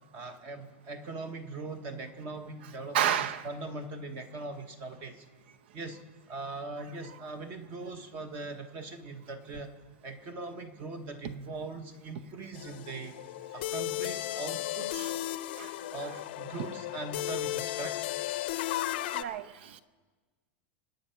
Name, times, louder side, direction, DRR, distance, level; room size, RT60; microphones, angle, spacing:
voice 1, 0.1-5.2 5.7-6.0 6.3-9.7 10.0-13.2 13.5-15.1 15.9-18.1, right 3 dB, 30° right, 8 dB, 1.1 m, -41 dB
voice 2, 2.9-3.5 7.1-7.2 15.0-15.1 15.6-15.7 16.0-16.1 19.1-19.8, right 9 dB, 60° right, 13 dB, 0.8 m, -31 dB
sound 1, 12.5-19.2, left 15 dB, 55° left, 0.6 m, -35 dB
27.0 x 9.2 x 5.7 m, 1.4 s
supercardioid pair, 180°, 7 cm